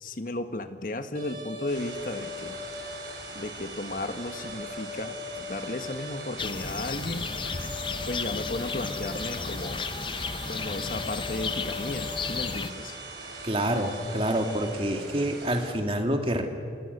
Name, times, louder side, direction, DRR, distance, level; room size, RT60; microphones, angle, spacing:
voice 1, 0.0-2.6 3.3-7.3 8.1-9.8 10.5-13.0, left 2 dB, 50° left, 8 dB, 1.5 m, -34 dB
sound 1, 1.1-14.7, left 2 dB, 55° right, 7.4 m, -40 dB
sound 2, 1.7-15.7, right 3 dB, 80° right, 6.2 m, -44 dB
sound 3, 6.4-12.7, left 5 dB, 30° left, 0.7 m, -34 dB
voice 2, 13.4-16.5, right 1 dB, 30° right, 4 dB, 2.2 m, -27 dB
29.0 x 24.5 x 6.8 m, 2.4 s
head